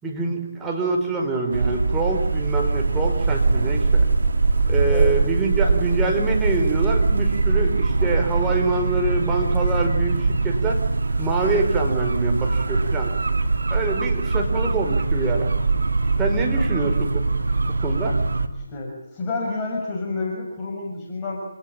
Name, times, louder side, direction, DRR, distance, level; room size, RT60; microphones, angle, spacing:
voice 1, 0.0-4.1 4.7-10.8 11.2-13.1 13.7-15.5 16.2-17.4 17.8-18.2, right 3 dB, 10° right, 0 dB, 5.0 m, -25 dB
sound 1, 1.5-18.5, right 3 dB, 70° right, 2.7 m, -22 dB
voice 2, 18.7-21.4, left 3 dB, 15° left, -3 dB, 7.1 m, -29 dB
29.0 x 19.0 x 9.0 m, 0.78 s
figure-of-eight pair, 150°, 0 cm